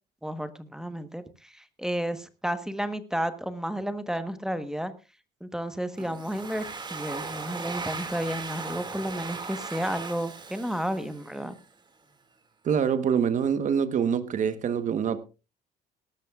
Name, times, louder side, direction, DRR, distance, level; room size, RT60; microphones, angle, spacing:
voice 1, 0.2-4.9 5.4-6.6 6.9-11.5, equal, 5° right, 1.2 m, -32 dB
Domestic sounds home sounds, 6.0-11.6, right 4 dB, 25° right, 2.2 m, -38 dB
voice 2, 12.6-15.2, right 7 dB, 50° right, 1.2 m, -25 dB
18.5 x 13.0 x 2.4 m
cardioid pair, 110°, 17 cm